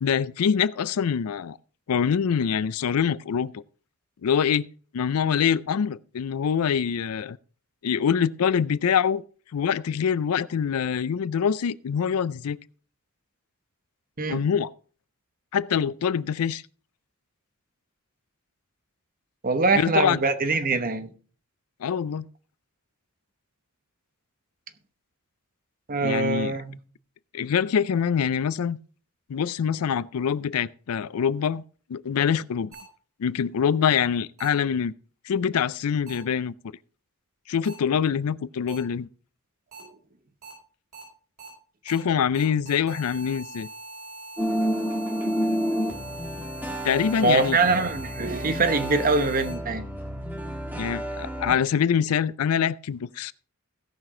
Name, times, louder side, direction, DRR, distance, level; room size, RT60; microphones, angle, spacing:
voice 1, 0.0-1.6 1.9-3.6 4.2-4.7 4.9-7.4 7.8-9.2 9.5-12.6 14.3-14.7 15.5-16.6 19.7-20.2 21.8-22.3 26.0-26.5 27.3-28.8 29.3-31.6 31.9-32.8 33.2-34.9 35.3-36.5 37.5-39.1 41.9-43.7 46.8-47.6 50.8-53.3, left 7 dB, 80° left, 0.4 m, -24 dB
voice 2, 19.4-21.1 25.9-26.8 44.5-44.9 47.2-49.8, right 3 dB, 40° right, 0.9 m, -24 dB
sound 1, 32.7-32.8 34.4-34.5 36.1-36.2 37.6-37.7 38.7-38.8 39.7-39.8 40.4-40.5 40.9-41.0 41.4-41.5 41.9-42.0 42.3-49.5, right 2 dB, 90° right, 6.1 m, -42 dB
sound 2, 44.4-51.5, equal, 10° right, 1.5 m, -30 dB
16.5 x 6.0 x 3.7 m
head